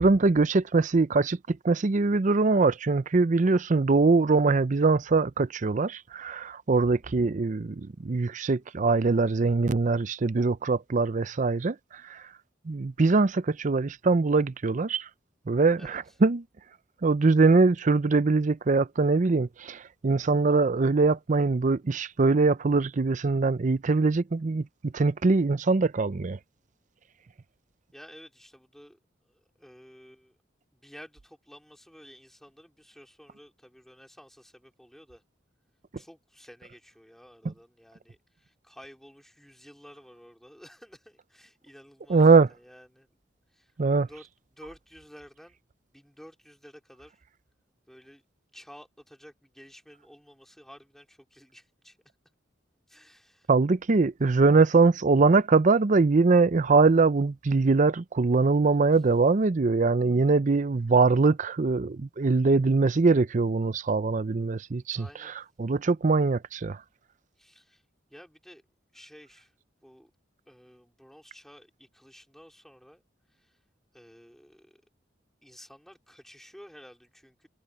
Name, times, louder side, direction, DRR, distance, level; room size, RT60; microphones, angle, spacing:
voice 1, 0.0-12.2 12.7-15.1 15.5-16.4 17.0-26.4 42.1-42.5 43.8-44.1 53.5-65.0 65.6-66.8, right 3 dB, 40° right, 0.5 m, -22 dB
voice 2, 27.9-30.4 30.7-35.2 35.9-43.1 43.5-43.7 44.1-45.6 45.9-47.2 47.9-48.2 48.5-52.0 52.9-53.5 64.9-65.3 67.4-67.8 68.1-68.6 68.9-69.5 69.8-70.1 70.5-73.0 73.3-73.6 73.9-74.8 75.4-77.5, equal, ahead, 3.6 m, -52 dB
head